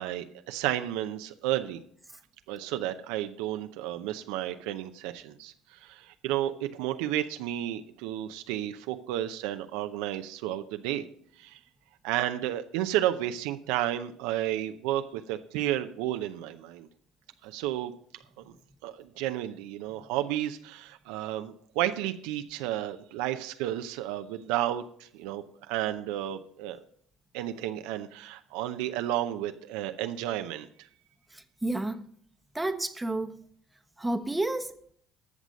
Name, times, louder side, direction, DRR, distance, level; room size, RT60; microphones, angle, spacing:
voice 1, 0.0-1.8 2.5-11.0 11.4-11.6 12.0-16.9 17.4-17.9 18.4-18.5 18.8-26.8 27.3-30.7, right 13 dB, 75° right, 0.6 m, -32 dB
voice 2, 31.3-32.0 32.5-33.4 34.0-34.9, right 2 dB, 10° right, 1.0 m, -31 dB
13.5 x 6.1 x 5.2 m
hypercardioid pair, 70°, 0 cm